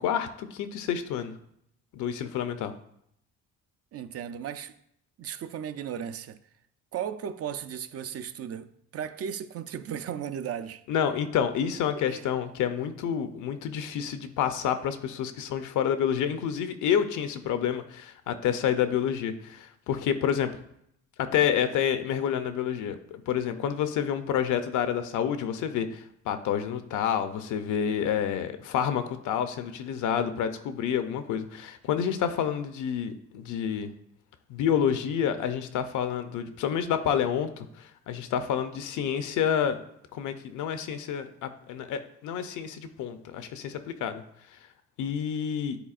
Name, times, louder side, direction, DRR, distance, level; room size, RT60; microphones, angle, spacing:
voice 1, 0.0-1.3 1.9-2.7 10.9-20.5 21.2-33.9 34.5-39.8 40.1-44.2 45.0-45.8, left 8 dB, 80° left, 0.6 m, -29 dB
voice 2, 3.9-4.7 5.2-6.4 6.9-10.8 12.1-12.2, right 8 dB, 50° right, 0.5 m, -35 dB
10.0 x 4.1 x 2.5 m
cardioid pair, 90°, 30 cm